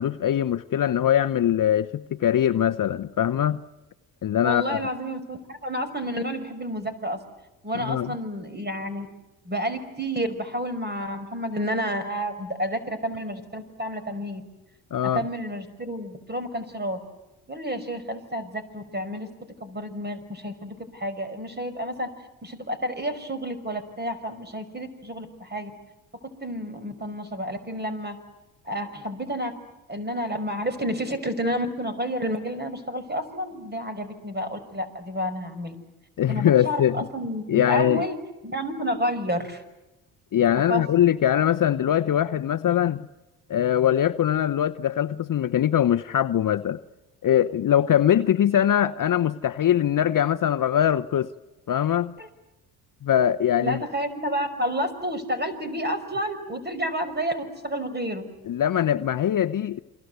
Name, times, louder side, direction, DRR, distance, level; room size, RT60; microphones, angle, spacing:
voice 1, 0.0-3.6 4.2-4.9 7.7-8.1 14.9-15.3 36.2-37.0 37.5-38.0 40.3-43.1 43.5-46.8 47.2-51.3 51.7-52.1 53.0-53.8 58.5-59.8, left 10 dB, 45° left, 0.9 m, -22 dB
voice 2, 4.4-7.2 7.6-9.1 9.4-14.4 15.1-17.0 17.5-19.3 19.6-22.1 22.4-25.7 26.2-28.2 28.6-29.5 29.9-35.8 36.3-39.6 40.7-40.8 52.2-52.3 53.6-58.3, equal, 20° right, 5.4 m, -30 dB
29.0 x 23.5 x 8.1 m
hypercardioid pair, 55°, 45 cm